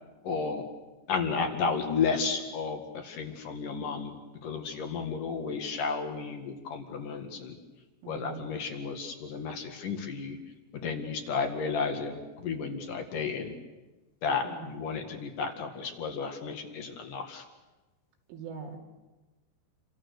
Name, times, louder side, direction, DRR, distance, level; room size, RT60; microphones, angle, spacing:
voice 1, 0.2-0.7 1.1-4.2 4.4-7.6 8.1-10.4 10.7-13.5 14.2-17.4, left 5 dB, 55° left, 5 dB, 2.6 m, -32 dB
voice 2, 8.0-8.4 14.4-14.7 18.3-18.8, right 6 dB, 70° right, 1 dB, 5.3 m, -41 dB
29.5 x 24.5 x 6.6 m, 1.1 s
omnidirectional pair, 5.9 m